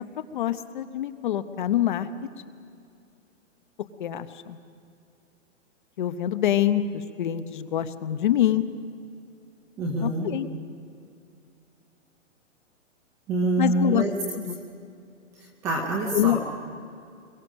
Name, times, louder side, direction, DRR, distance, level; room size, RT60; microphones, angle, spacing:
voice 1, 0.3-2.1 4.0-4.6 6.0-8.6 10.0-10.5 13.6-14.0 14.3-14.6 16.1-16.4, left 12 dB, 40° left, 11 dB, 0.8 m, -25 dB
voice 2, 9.8-10.3 13.3-14.1 15.4-16.4, right 2 dB, 10° right, 1 dB, 0.5 m, -26 dB
22.5 x 21.0 x 6.3 m, 2.5 s
hypercardioid pair, 170°, 37 cm